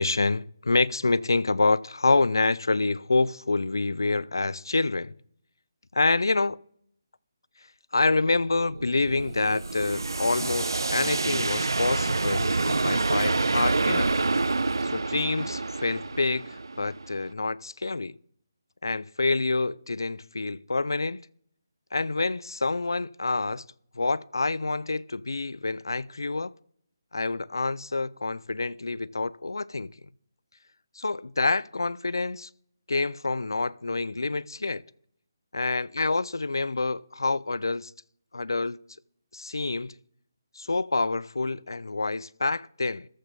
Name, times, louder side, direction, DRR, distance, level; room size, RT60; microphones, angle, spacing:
voice 1, 0.0-5.1 5.9-6.6 7.9-14.1 14.8-18.1 18.8-21.2 21.9-23.6 24.0-26.5 27.1-29.9 31.0-32.5 32.9-34.8 35.5-37.9 38.3-38.8 39.3-39.9 40.6-43.1, left 3 dB, 90° left, 0.4 m, -27 dB
sound 1, 8.4-17.3, right 3 dB, 90° right, 0.4 m, -27 dB
13.5 x 6.8 x 5.3 m
figure-of-eight pair, 160°, 2 cm